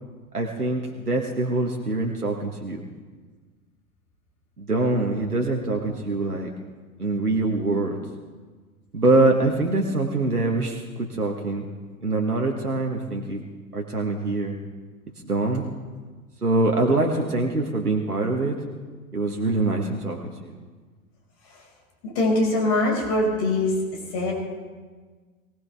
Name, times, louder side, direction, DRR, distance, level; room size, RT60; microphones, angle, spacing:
voice 1, 0.3-2.9 4.6-6.5 7.0-8.0 8.9-11.6 12.0-13.4 13.7-14.6 15.2-15.6 16.4-18.6 19.1-20.5, right 2 dB, 90° right, 0 dB, 1.6 m, -24 dB
voice 2, 22.0-23.8 24.1-24.3, left 2 dB, 45° left, -1 dB, 5.5 m, -22 dB
23.0 x 17.5 x 3.5 m, 1.4 s
figure-of-eight pair, 95°, 44 cm